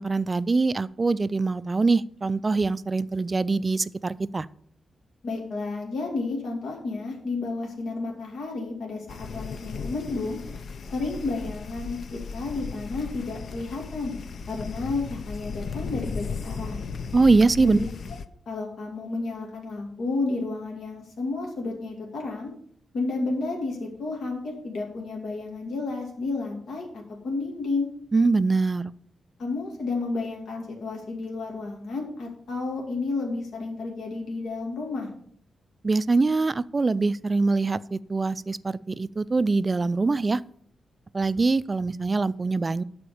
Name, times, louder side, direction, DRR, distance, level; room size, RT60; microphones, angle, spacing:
voice 1, 0.0-4.5 17.1-17.8 28.1-28.9 35.8-40.4 41.1-42.8, right 3 dB, 25° right, 17 dB, 0.3 m, -23 dB
voice 2, 5.2-10.4 10.9-14.1 14.5-16.8 17.6-17.8 18.5-22.5 22.9-27.9 29.4-35.1, left 3 dB, 80° left, -1 dB, 2.5 m, -31 dB
sound 1, 9.1-18.2, left 5 dB, 55° left, 0.6 m, -36 dB
12.0 x 4.3 x 6.9 m, 0.64 s
wide cardioid pair, 150°, 0 cm